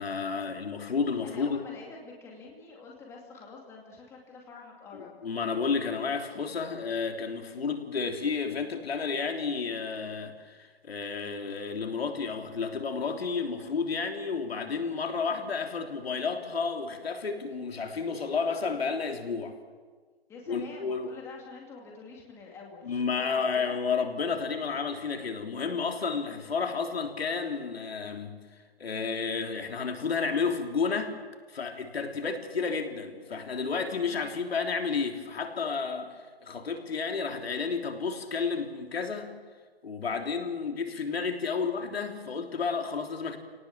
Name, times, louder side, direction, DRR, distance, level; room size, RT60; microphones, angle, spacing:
voice 1, 0.0-1.6 4.9-19.6 20.5-21.1 22.8-28.4 28.8-31.1 31.5-36.1 36.4-39.3 39.8-43.4, left 5 dB, 75° left, 4 dB, 3.5 m, -31 dB
voice 2, 1.2-5.1 20.3-23.8, left 4 dB, 10° left, -1 dB, 2.4 m, -46 dB
28.0 x 18.5 x 7.4 m, 1.5 s
hypercardioid pair, 165°, 30 cm